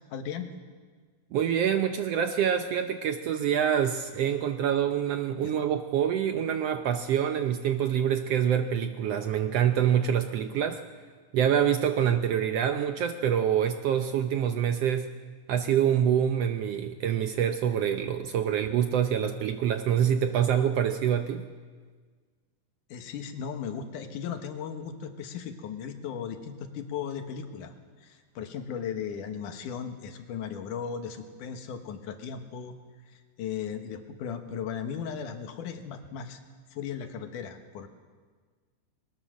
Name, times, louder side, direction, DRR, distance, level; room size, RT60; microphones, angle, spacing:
voice 1, 0.1-0.5 5.4-5.5 22.9-27.7 28.0-32.8 33.1-36.4 36.7-37.9, left 7 dB, 80° left, 7 dB, 2.8 m, -36 dB
voice 2, 1.3-10.8 11.3-15.1 15.5-21.5, right 9 dB, 75° right, 8 dB, 1.4 m, -26 dB
20.5 x 20.0 x 6.3 m, 1.5 s
omnidirectional pair, 3.6 m